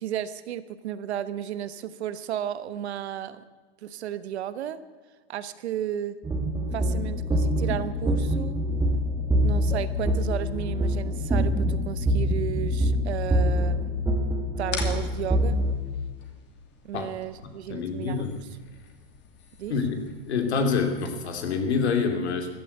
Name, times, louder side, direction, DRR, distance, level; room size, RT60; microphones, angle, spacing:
voice 1, 0.0-3.4 3.8-4.8 5.3-6.2 6.7-8.6 9.4-14.0 14.6-15.6 16.8-18.3 19.6-19.8, right 10 dB, 80° right, 13 dB, 1.2 m, -33 dB
sound 1, 6.2-15.7, equal, 10° right, 2.1 m, -25 dB
sound 2, 14.6-21.6, left 5 dB, 35° left, 2.7 m, -43 dB
voice 2, 17.7-18.4 19.7-20.0 20.3-22.5, left 5 dB, 85° left, 5 dB, 2.9 m, -26 dB
14.5 x 12.0 x 8.3 m, 1.4 s
supercardioid pair, 130°, 32 cm